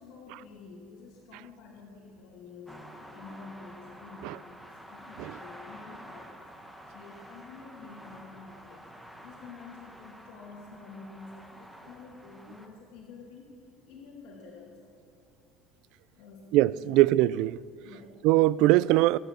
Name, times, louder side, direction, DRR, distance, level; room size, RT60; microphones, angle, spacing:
voice 1, 0.0-6.4 6.6-8.9 9.2-13.5 13.9-15.0 16.2-17.1 17.8-18.3, left 4 dB, 65° left, 2.4 m, -49 dB
sound 1, 2.7-12.7, equal, ahead, 1.3 m, -49 dB
voice 2, 16.5-17.6 18.2-19.2, right 16 dB, 65° right, 0.3 m, -22 dB
22.5 x 9.3 x 6.6 m
cardioid pair, 150°, 0 cm